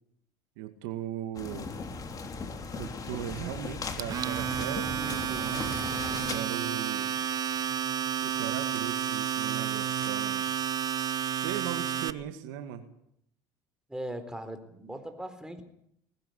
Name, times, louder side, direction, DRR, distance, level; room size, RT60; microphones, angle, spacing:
voice 1, 0.6-1.7 2.8-7.1 8.2-10.4 11.4-12.8, right 11 dB, 75° right, 7 dB, 2.3 m, -38 dB
sound 1, 1.3-6.4, left 4 dB, 35° left, 3.7 m, -38 dB
Domestic sounds home sounds, 4.0-12.1, right 9 dB, 40° right, 1.0 m, -31 dB
sound 2, 5.7-6.2 6.4-7.0 7.5-7.6 8.1-9.5 9.8-11.1, left 2 dB, 15° left, 4.1 m, -56 dB
voice 2, 13.9-15.6, right 1 dB, 5° right, 7 dB, 4.1 m, -39 dB
20.0 x 15.0 x 9.6 m, 0.73 s
hypercardioid pair, 80°, 10 cm